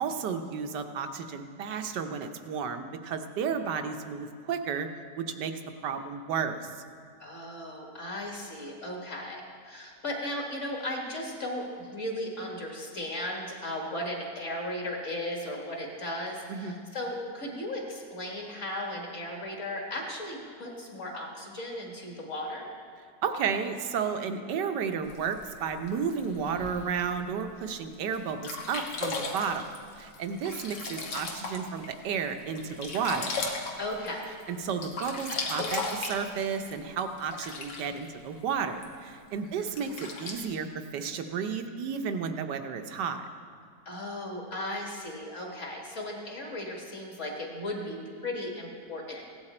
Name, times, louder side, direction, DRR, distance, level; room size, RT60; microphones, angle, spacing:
voice 1, 0.0-4.9 5.1-6.7 16.5-16.8 23.2-29.7 30.0-33.3 34.5-40.7 40.9-43.2, right 6 dB, 80° right, 7 dB, 1.5 m, -32 dB
voice 2, 7.2-22.7 33.8-34.3 39.4-39.7 43.9-49.2, left 1 dB, 45° left, 0 dB, 2.1 m, -36 dB
Sink (filling or washing), 25.1-27.0 27.6-27.7 28.1-28.2 28.4-31.9 32.3-34.4 34.7-38.0 38.8-38.9 39.6-40.4, left 3 dB, 80° left, 2.0 m, -36 dB
16.0 x 11.0 x 4.3 m, 2.2 s
omnidirectional pair, 1.9 m